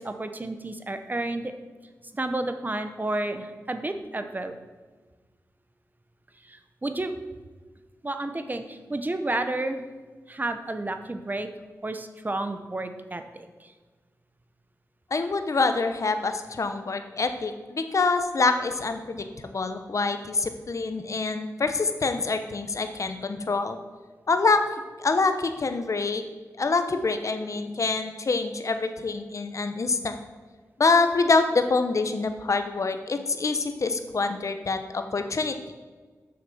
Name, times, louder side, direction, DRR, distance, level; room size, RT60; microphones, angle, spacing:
voice 1, 0.0-1.5 2.1-4.5 6.4-7.1 8.0-9.8 10.3-11.5 11.8-13.7, right 2 dB, 30° right, 8 dB, 0.8 m, -31 dB
voice 2, 15.1-23.8 24.3-24.6 25.0-26.2 26.6-30.2 30.8-35.6, left 3 dB, 55° left, 8 dB, 0.8 m, -25 dB
6.5 x 5.9 x 5.4 m, 1.4 s
cardioid pair, 50°, 6 cm